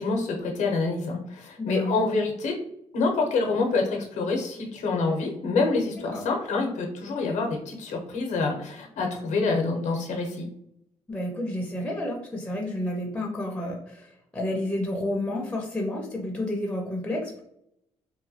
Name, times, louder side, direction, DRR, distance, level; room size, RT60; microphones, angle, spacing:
voice 1, 0.0-2.5 2.9-10.5, left 3 dB, 80° left, 1 dB, 0.7 m, -27 dB
voice 2, 1.6-2.0 6.1-6.2 11.1-17.4, left 1 dB, 10° left, 0 dB, 0.5 m, -30 dB
3.0 x 2.2 x 2.7 m, 0.73 s
cardioid pair, 100°, 12 cm